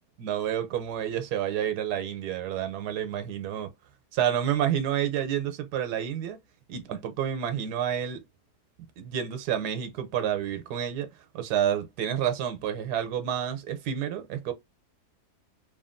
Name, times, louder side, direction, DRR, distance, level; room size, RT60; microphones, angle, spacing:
voice 1, 0.2-3.7 4.1-6.4 6.7-8.2 9.0-11.1 11.3-14.5, right 10 dB, 90° right, 1.2 m, -29 dB
3.1 x 2.3 x 2.4 m
omnidirectional pair, 1.7 m